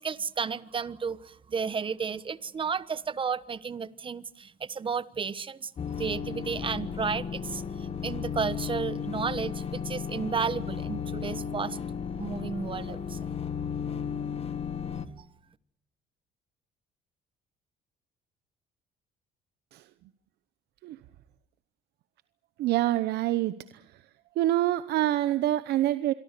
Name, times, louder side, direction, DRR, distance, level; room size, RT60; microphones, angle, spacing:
voice 1, 0.0-5.7 6.0-7.6 8.0-11.8 12.2-13.2, right 6 dB, 30° right, 16 dB, 1.1 m, -32 dB
sound 1, 5.8-15.1, left 7 dB, 35° left, 1.8 m, -34 dB
voice 2, 22.6-24.0 24.4-26.1, right 14 dB, 75° right, 13 dB, 0.9 m, -26 dB
27.0 x 23.0 x 6.8 m, 0.75 s
cardioid pair, 110°, 17 cm